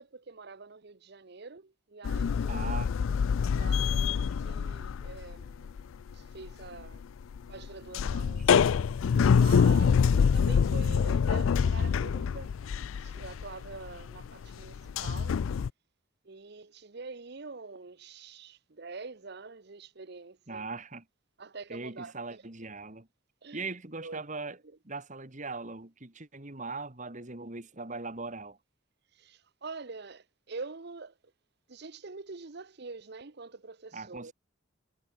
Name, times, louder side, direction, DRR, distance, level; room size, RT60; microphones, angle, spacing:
voice 1, 0.0-2.8 3.5-5.7 6.1-7.1 7.5-8.5 9.1-12.5 13.0-15.4 16.2-20.7 21.4-22.4 23.4-23.7 24.0-24.3 24.6-24.8 29.1-31.2 31.7-34.3, right 4 dB, 55° right, 0.9 m, -45 dB
sound 1, 2.0-5.8 6.1-15.7, left 6 dB, 90° left, 0.4 m, -26 dB
voice 2, 2.5-2.9 20.5-21.0 21.7-23.1 23.5-24.6 24.8-28.6 33.9-34.3, right 3 dB, 40° right, 2.2 m, -40 dB
head